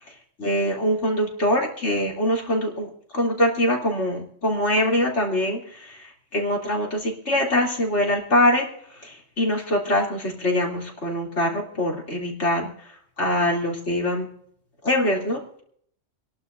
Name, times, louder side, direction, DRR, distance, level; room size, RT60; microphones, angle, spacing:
voice 1, 0.4-6.0 6.3-8.7 9.0-12.7 13.2-14.3 14.8-15.4, left 1 dB, 65° left, -2 dB, 3.5 m, -23 dB
27.0 x 11.5 x 2.7 m, 0.63 s
omnidirectional pair, 1.3 m